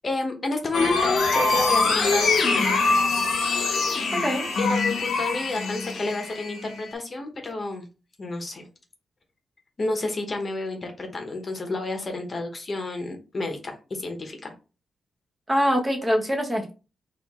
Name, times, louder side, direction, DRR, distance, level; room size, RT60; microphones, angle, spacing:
voice 1, 0.0-2.7 4.6-7.9 8.2-8.7 9.8-14.5, left 3 dB, 35° left, 4 dB, 1.0 m, -30 dB
sound 1, 0.7-6.9, left 3 dB, 80° left, 0.9 m, -24 dB
voice 2, 4.1-4.5 15.5-16.7, equal, 15° right, 1 dB, 0.9 m, -24 dB
4.5 x 2.6 x 3.6 m, 0.32 s
wide cardioid pair, 125°, 0 cm